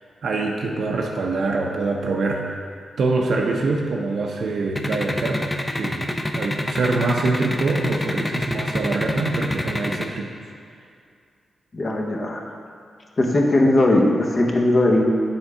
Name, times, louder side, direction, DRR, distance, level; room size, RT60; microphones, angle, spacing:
voice 1, 0.2-2.6 3.0-10.3, right 3 dB, 70° right, 0 dB, 0.6 m, -24 dB
sound 1, 4.8-10.1, left 1 dB, 15° left, 0.5 m, -25 dB
voice 2, 11.7-12.4 13.2-15.0, left 1 dB, 40° left, 0 dB, 0.9 m, -18 dB
7.1 x 3.5 x 4.9 m, 2.3 s
cardioid pair, 80°, 0 cm